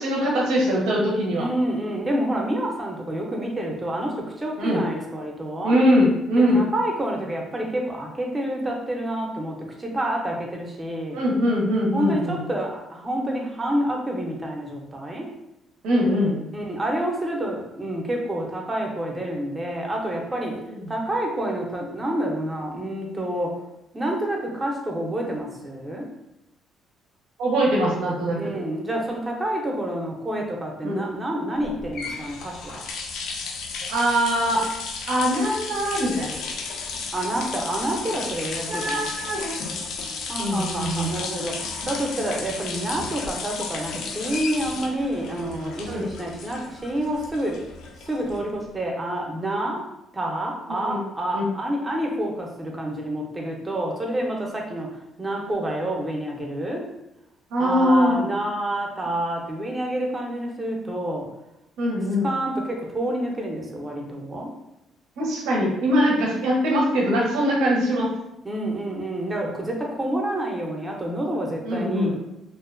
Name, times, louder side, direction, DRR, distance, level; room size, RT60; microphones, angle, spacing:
voice 1, 0.0-1.5 4.6-4.8 5.6-6.6 11.1-12.4 15.8-16.4 20.7-20.8 27.4-28.5 30.8-31.0 33.9-34.6 35.1-36.3 38.7-39.6 40.4-41.1 45.9-46.1 50.7-51.0 51.3-51.5 57.5-58.2 61.8-62.3 65.2-68.1 71.6-72.1, equal, 90° right, -3 dB, 0.6 m, -22 dB
voice 2, 1.3-5.8 6.4-11.2 11.9-15.3 16.5-20.6 20.9-23.6 23.9-26.1 28.3-32.8 37.1-39.1 40.3-47.6 48.0-49.9 50.1-54.9 55.2-56.8 57.6-61.3 62.2-64.5 68.4-72.1, right 1 dB, 20° right, 0 dB, 0.5 m, -28 dB
sound 1, 31.6-48.7, left 4 dB, 75° left, 0.3 m, -34 dB
2.5 x 2.1 x 2.4 m, 0.87 s
cardioid pair, 110°, 0 cm